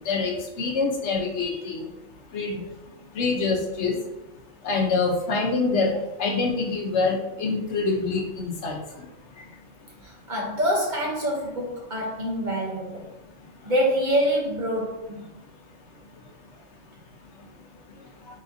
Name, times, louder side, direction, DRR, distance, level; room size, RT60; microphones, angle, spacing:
voice 1, 0.0-1.8 2.3-2.6 3.1-4.0 4.6-8.8, left 4 dB, 65° left, 2 dB, 0.9 m, -25 dB
voice 2, 10.0-13.1 13.6-15.4, equal, 45° right, -2 dB, 0.8 m, -26 dB
4.1 x 3.8 x 2.5 m, 0.93 s
omnidirectional pair, 1.3 m